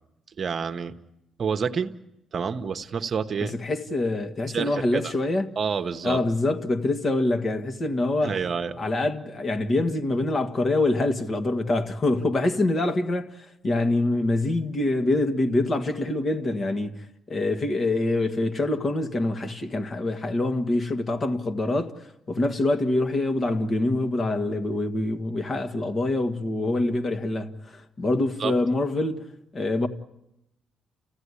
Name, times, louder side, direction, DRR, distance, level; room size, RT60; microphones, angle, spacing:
voice 1, 0.4-0.9 1.4-1.9 2.3-3.6 4.5-4.8 5.6-6.2 8.2-8.8 28.4-28.5, right 6 dB, 50° right, 1.1 m, -28 dB
voice 2, 3.4-5.5 6.0-8.4 8.8-29.9, left 2 dB, 40° left, 1.9 m, -25 dB
29.5 x 16.0 x 9.9 m
cardioid pair, 90°, 0 cm